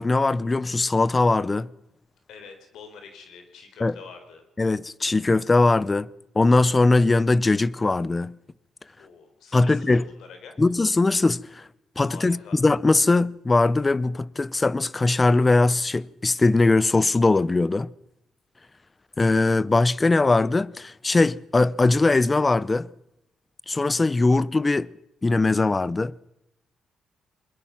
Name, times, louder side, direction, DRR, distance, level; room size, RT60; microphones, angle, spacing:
voice 1, 0.0-1.7 3.8-4.0 4.6-6.1 6.4-8.4 9.5-10.1 10.6-11.7 12.0-17.9 19.2-22.9 23.7-24.9 25.2-26.1, left 3 dB, 25° left, 0.7 m, -21 dB
voice 2, 2.3-4.4 9.0-10.6 12.0-12.6, left 5 dB, 75° left, 4.4 m, -46 dB
23.0 x 21.0 x 5.9 m
cardioid pair, 90°, 0 cm